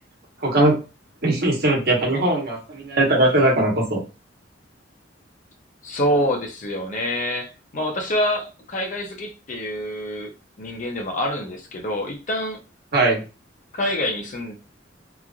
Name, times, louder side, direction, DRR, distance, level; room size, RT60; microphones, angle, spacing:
voice 1, 0.4-0.8 1.2-4.0 12.9-13.2, right 1 dB, 55° right, -1 dB, 1.2 m, -19 dB
voice 2, 5.8-10.3 10.6-12.6 13.7-14.5, equal, 45° left, 2 dB, 0.7 m, -26 dB
3.1 x 2.5 x 2.4 m, 0.31 s
head